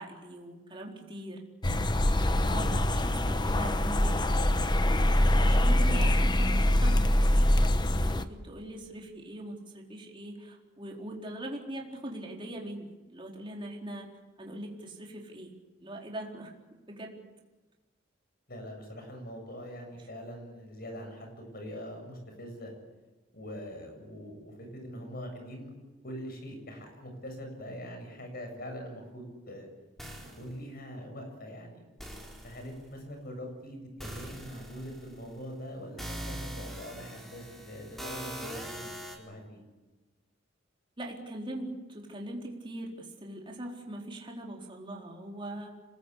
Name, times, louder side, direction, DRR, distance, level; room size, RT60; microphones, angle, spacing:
voice 1, 0.0-1.4 2.2-4.5 5.3-7.5 8.0-14.1 14.4-15.5 15.8-17.2 41.0-45.7, right 1 dB, 25° right, -1 dB, 4.2 m, -41 dB
sound 1, 1.6-8.2, left 1 dB, 20° left, 1.0 m, -24 dB
voice 2, 5.4-6.1 18.5-22.7 23.3-25.7 26.0-29.7 30.4-31.8 32.4-38.8 39.2-39.6, equal, 50° left, 4 dB, 7.9 m, -43 dB
sound 2, 30.0-30.5 32.0-32.8 34.0-35.3 36.0-39.2, right 1 dB, ahead, 4.2 m, -42 dB
27.0 x 20.5 x 8.4 m, 1.2 s
head